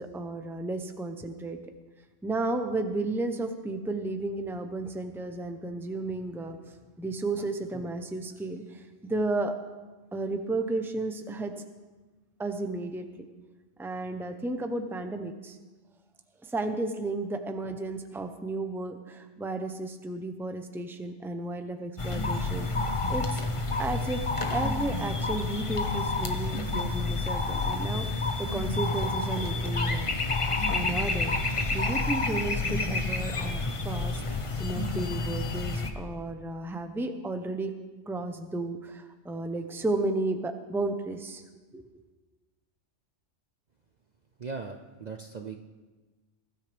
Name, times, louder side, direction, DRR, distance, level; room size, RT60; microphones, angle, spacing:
voice 1, 0.0-1.6 2.2-6.6 7.0-9.5 10.1-11.6 12.4-13.2 13.8-15.6 16.4-22.7 23.1-23.4 23.8-24.2 24.5-30.2 30.7-31.3 31.7-37.7 38.1-41.4 41.7-41.8, right 2 dB, ahead, 6 dB, 0.7 m, -33 dB
sound 1, 22.0-35.9, left 3 dB, 30° left, 0.9 m, -29 dB
voice 2, 44.4-45.6, right 4 dB, 45° right, 4 dB, 0.7 m, -38 dB
21.5 x 12.5 x 3.5 m, 1.3 s
omnidirectional pair, 1.3 m